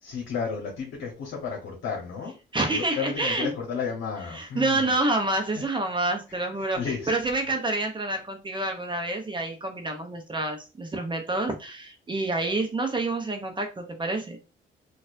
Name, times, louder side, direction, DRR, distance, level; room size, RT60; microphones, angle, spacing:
voice 1, 0.0-2.3 2.7-4.9 6.8-7.1, left 6 dB, 75° left, -1 dB, 1.1 m, -32 dB
voice 2, 2.5-3.5 4.3-14.4, right 2 dB, 25° right, 4 dB, 0.7 m, -28 dB
4.2 x 2.5 x 2.5 m, 0.31 s
cardioid pair, 90°, 20 cm